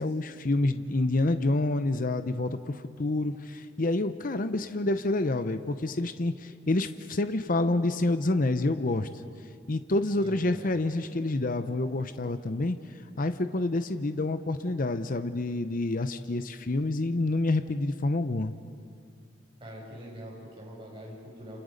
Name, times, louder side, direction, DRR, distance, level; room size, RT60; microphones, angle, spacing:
voice 1, 0.0-9.1 9.7-12.8 13.2-18.5, left 2 dB, 45° left, 10 dB, 0.7 m, -28 dB
voice 2, 10.2-10.7 19.6-21.6, equal, 25° right, -3 dB, 6.3 m, -44 dB
30.0 x 28.0 x 5.2 m, 2.3 s
head